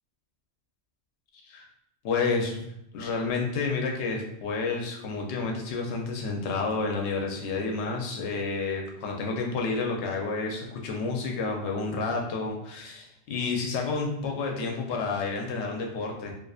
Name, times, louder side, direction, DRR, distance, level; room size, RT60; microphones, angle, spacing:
voice 1, 2.0-2.7 2.9-16.3, left 4 dB, 80° left, 0 dB, 0.8 m, -30 dB
2.5 x 2.3 x 2.3 m, 0.80 s
omnidirectional pair, 1.1 m